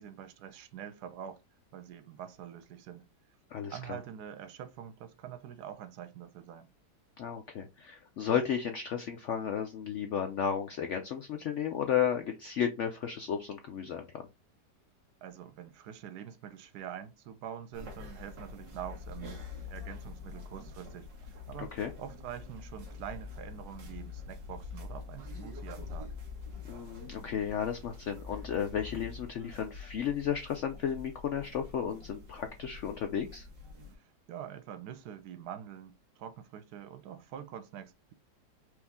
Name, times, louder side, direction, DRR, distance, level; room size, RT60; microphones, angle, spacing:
voice 1, 0.0-1.4 1.7-3.1 3.7-6.7 15.2-26.1 33.9-38.1, right 9 dB, 70° right, 1.2 m, -45 dB
voice 2, 7.2-14.2 21.6-21.9 26.7-33.5, left 8 dB, 85° left, 0.6 m, -33 dB
sound 1, 17.7-34.0, left 4 dB, 85° right, 1.8 m, -45 dB
4.6 x 2.6 x 3.5 m
omnidirectional pair, 1.9 m